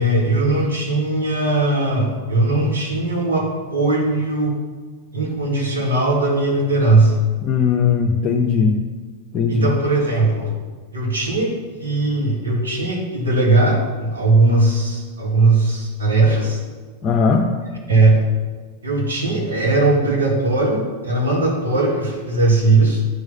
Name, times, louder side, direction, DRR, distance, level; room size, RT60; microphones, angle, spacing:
voice 1, 0.0-4.5 5.1-7.1 9.5-10.5 10.9-11.5 11.8-16.6 17.9-18.2 18.8-23.0, right 2 dB, 75° right, -3 dB, 2.0 m, -18 dB
voice 2, 7.4-8.8 9.3-9.7 17.0-17.5, left 5 dB, 35° left, 1 dB, 0.7 m, -18 dB
9.1 x 4.8 x 5.4 m, 1.4 s
figure-of-eight pair, 90°, 0 cm